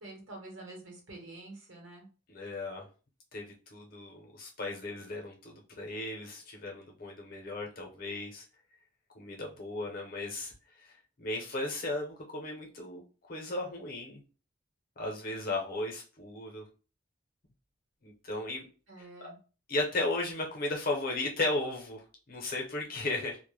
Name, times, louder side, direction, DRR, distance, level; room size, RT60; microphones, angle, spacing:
voice 1, 0.0-2.1 18.9-19.4, right 2 dB, 70° right, 1 dB, 0.9 m, -47 dB
voice 2, 2.3-2.9 3.3-8.4 9.1-10.5 10.8-10.9 11.2-13.0 13.3-14.2 15.0-16.6 18.0-18.7 19.0-19.3 19.7-23.4, left 2 dB, 45° left, 1 dB, 0.6 m, -35 dB
2.1 x 2.0 x 3.1 m, 0.35 s
head